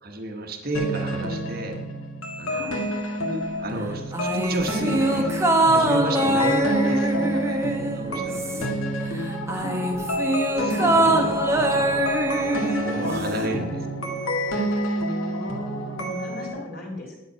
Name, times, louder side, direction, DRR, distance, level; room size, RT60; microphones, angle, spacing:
voice 1, 0.0-1.8 2.4-2.7 3.3-5.3 5.7-8.8 10.0-10.1 10.6-13.8, right 1 dB, 45° right, 3 dB, 1.1 m, -32 dB
sound 1, 0.7-16.5, equal, 85° left, 2.0 m, -29 dB
sound 2, 4.1-8.9 9.2-13.5 13.8-13.9, right 1 dB, 15° right, 0.9 m, -23 dB
voice 2, 15.3-17.2, left 1 dB, 45° left, -1 dB, 2.5 m, -37 dB
11.0 x 8.1 x 5.5 m, 1.1 s
head